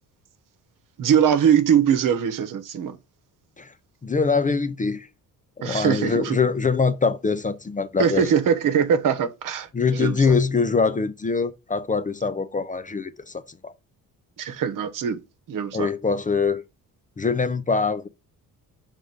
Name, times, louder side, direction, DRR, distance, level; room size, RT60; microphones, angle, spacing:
voice 1, 1.0-3.0 5.6-6.4 8.0-10.3 14.4-15.2 15.5-15.9, right 8 dB, 65° right, 1.1 m, -22 dB
voice 2, 4.0-5.1 5.6-8.3 9.7-13.7 15.7-16.6 17.2-18.1, left 5 dB, 20° left, 0.6 m, -23 dB
5.3 x 3.6 x 5.1 m
cardioid pair, 75°, 35 cm